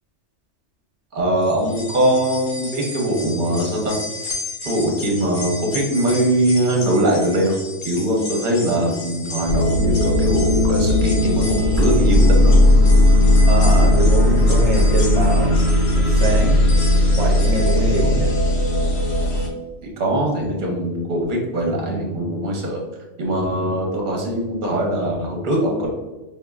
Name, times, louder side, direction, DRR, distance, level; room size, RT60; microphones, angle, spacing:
voice 1, 1.1-4.0 4.6-7.5 7.8-12.6 16.6-16.8 19.8-22.8 23.2-25.9, right 1 dB, 45° right, -1 dB, 1.0 m, -21 dB
sound 1, 1.4-18.7 19.1-19.2 20.3-20.4, left 2 dB, 55° left, 0.9 m, -34 dB
sound 2, 9.5-19.5, left 1 dB, 85° left, 1.1 m, -16 dB
voice 2, 13.5-15.6 15.9-16.6 17.2-18.3 21.8-22.2, right 3 dB, 80° right, 0 dB, 0.9 m, -23 dB
5.1 x 2.6 x 2.3 m, 1.1 s
omnidirectional pair, 1.2 m